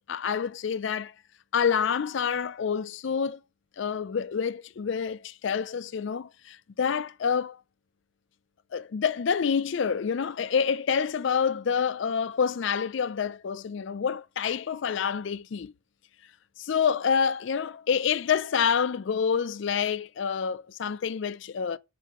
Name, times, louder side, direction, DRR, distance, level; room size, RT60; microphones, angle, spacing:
voice 1, 0.1-1.1 1.5-3.4 3.8-7.6 8.7-15.7 16.6-21.8, left 6 dB, 60° left, 0.4 m, -27 dB
8.3 x 7.4 x 3.7 m
head